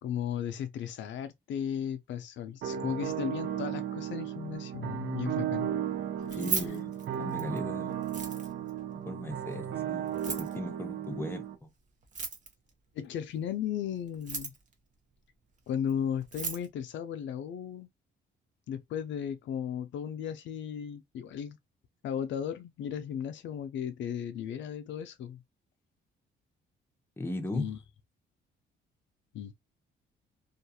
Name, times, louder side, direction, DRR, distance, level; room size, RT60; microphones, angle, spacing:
voice 1, 0.0-5.7 13.0-14.5 15.7-17.9 18.7-21.6 22.0-25.4 27.5-27.8 29.3-29.5, left 9 dB, 70° left, 0.4 m, -35 dB
sound 1, 2.6-11.5, right 10 dB, 70° right, 0.6 m, -35 dB
Keys jangling, 6.2-7.6 8.0-8.7 10.1-10.6 12.0-12.7 14.1-14.7 15.9-16.0 16.2-16.7, right 4 dB, 40° right, 0.8 m, -36 dB
voice 2, 6.4-6.9 7.2-8.0 9.1-11.7 27.2-27.7, left 1 dB, 10° left, 0.7 m, -37 dB
2.4 x 2.3 x 2.7 m
cardioid pair, 90°, 20 cm